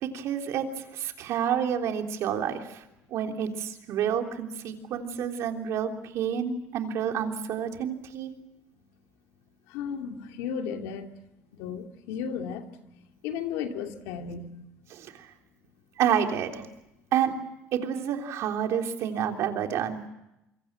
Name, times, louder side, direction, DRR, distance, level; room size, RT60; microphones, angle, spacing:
voice 1, 0.0-2.8 3.1-8.3 14.9-15.3 16.0-16.7 17.1-17.3 17.7-20.0, right 8 dB, 70° right, 4 dB, 3.4 m, -29 dB
voice 2, 9.7-11.1 11.5-12.7 13.2-14.5, left 7 dB, 90° left, 5 dB, 2.5 m, -34 dB
26.5 x 23.5 x 7.6 m, 0.88 s
cardioid pair, 100°, 5 cm